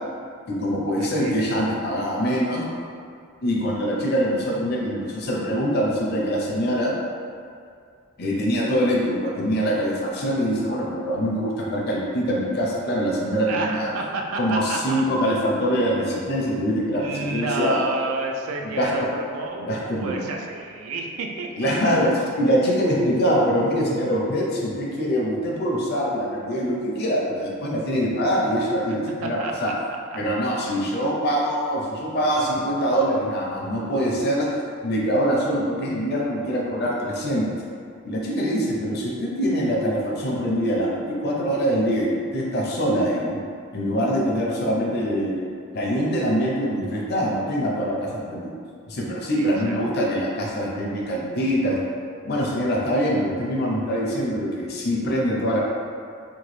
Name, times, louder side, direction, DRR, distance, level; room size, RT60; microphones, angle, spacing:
voice 1, 0.5-2.6 3.4-7.0 8.2-13.9 14.4-17.8 18.8-18.9 19.6-20.3 21.6-22.1 22.4-29.7 30.2-34.5 34.8-37.6 38.0-43.4 43.7-45.4 45.7-48.5 48.9-51.8 52.2-55.6, equal, 50° left, -2 dB, 0.5 m, -24 dB
voice 2, 1.0-1.4 13.5-15.0 16.7-21.9 29.2-30.2 49.3-49.8, right 3 dB, 85° right, 1 dB, 0.4 m, -30 dB
2.9 x 2.2 x 3.1 m, 2.3 s
head